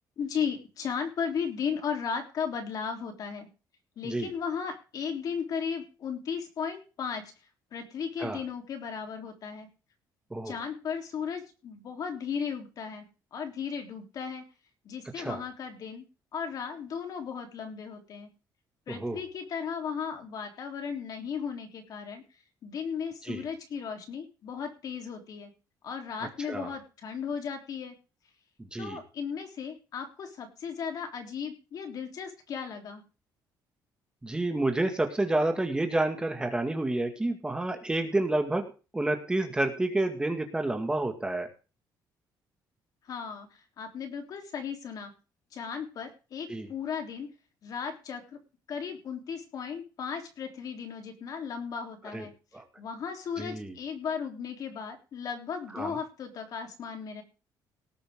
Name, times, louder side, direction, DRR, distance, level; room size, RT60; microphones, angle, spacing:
voice 1, 0.2-3.5 4.0-7.3 7.7-9.7 10.4-13.1 13.3-14.5 14.8-16.0 16.3-18.3 18.9-22.2 22.6-25.5 25.8-28.0 28.8-33.0 43.0-45.1 45.5-47.3 47.6-48.4 48.7-52.3 52.8-57.2, left 6 dB, 55° left, 4 dB, 3.6 m, -36 dB
voice 2, 18.9-19.2 23.2-23.4 26.5-26.7 28.7-29.0 34.2-38.7 38.9-41.5 46.5-46.7 52.1-52.3 52.5-52.6 53.4-53.7 55.7-55.9, right 2 dB, 10° right, 5 dB, 2.1 m, -29 dB
18.5 x 8.5 x 3.8 m, 0.33 s
cardioid pair, 135°, 8 cm